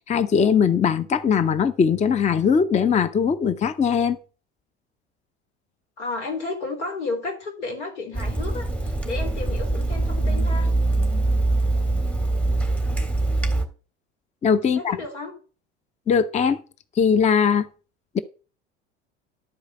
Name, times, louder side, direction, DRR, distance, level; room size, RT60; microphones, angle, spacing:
voice 1, 0.1-4.2 14.4-15.0 16.1-16.6 17.0-17.7 18.1-18.2, left 6 dB, 20° left, 0.6 m, -20 dB
voice 2, 6.0-10.7 14.6-15.3, left 3 dB, 75° left, 3.2 m, -32 dB
Water tap faucet / Sink (filling or washing), 8.1-13.6, right 2 dB, 5° left, 1.7 m, -23 dB
11.5 x 4.9 x 6.7 m
hypercardioid pair, 75°, 35 cm